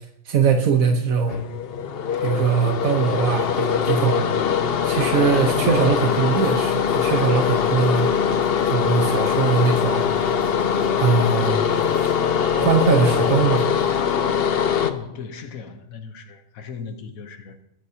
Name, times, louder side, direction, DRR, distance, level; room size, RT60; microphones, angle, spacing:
voice 1, 0.2-1.4 2.2-4.3 4.8-8.1 8.7-10.1 11.0-11.6 12.6-13.7, right 5 dB, 85° right, 1.5 m, -21 dB
sound 1, 1.3-14.9, left 7 dB, 50° left, 0.9 m, -22 dB
sound 2, 5.5-14.1, equal, 10° right, 3.0 m, -41 dB
voice 2, 14.8-17.6, left 6 dB, 85° left, 1.4 m, -37 dB
21.5 x 10.5 x 2.8 m
omnidirectional pair, 1.4 m